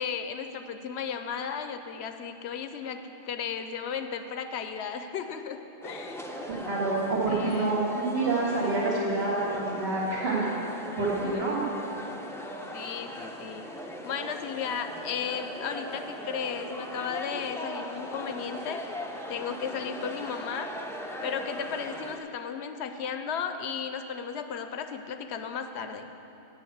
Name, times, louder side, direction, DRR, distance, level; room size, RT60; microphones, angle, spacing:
voice 1, 0.0-6.2 7.2-7.8 11.2-11.6 12.7-13.7 14.0-18.8 19.3-20.7 21.2-26.1, left 7 dB, 75° left, 8 dB, 0.8 m, -35 dB
sound 1, 5.8-22.2, equal, 5° left, 0.4 m, -39 dB
voice 2, 6.5-9.4 9.7-10.5 11.0-11.7, right 2 dB, 60° right, -5 dB, 2.0 m, -27 dB
8.1 x 7.2 x 7.9 m, 2.9 s
omnidirectional pair, 1.2 m